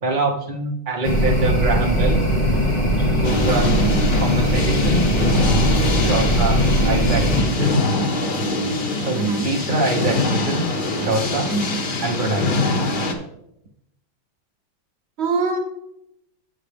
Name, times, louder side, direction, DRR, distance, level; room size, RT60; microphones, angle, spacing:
voice 1, 0.0-2.2 3.1-3.7 4.1-5.1 6.0-7.8 8.9-10.7 11.0-11.5 12.0-12.7, right 2 dB, 35° right, 0 dB, 0.9 m, -24 dB
sound 1, 1.0-7.4, equal, 30° left, 0.6 m, -19 dB
sound 2, 3.2-13.1, left 2 dB, 90° left, 0.4 m, -23 dB
voice 2, 3.6-3.9 9.1-9.5 11.4-11.8 15.2-15.6, right 4 dB, 80° right, 4 dB, 0.6 m, -23 dB
8.0 x 7.6 x 3.4 m, 0.82 s
omnidirectional pair, 2.1 m